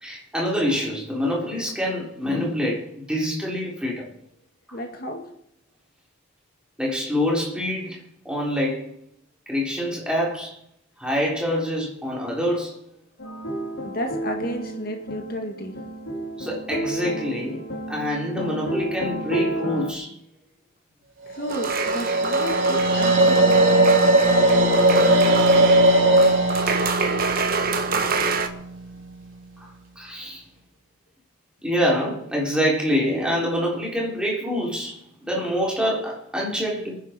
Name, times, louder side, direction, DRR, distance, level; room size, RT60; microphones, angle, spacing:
voice 1, 0.0-4.1 6.8-8.9 9.5-10.6 11.0-12.8 13.2-13.7 16.4-17.6 17.9-20.1 29.6-30.4 31.6-37.0, equal, 5° right, -3 dB, 3.6 m, -26 dB
voice 2, 4.7-5.2 13.8-15.8 21.3-23.5, equal, 50° left, 3 dB, 2.0 m, -32 dB
sound 1, 13.2-19.9, right 1 dB, 80° left, 2.9 m, -31 dB
sound 2, 21.4-28.5, right 1 dB, 80° right, 3.3 m, -19 dB
sound 3, 21.5-28.5, right 4 dB, 45° right, 1.3 m, -27 dB
25.5 x 10.5 x 4.5 m, 0.72 s
head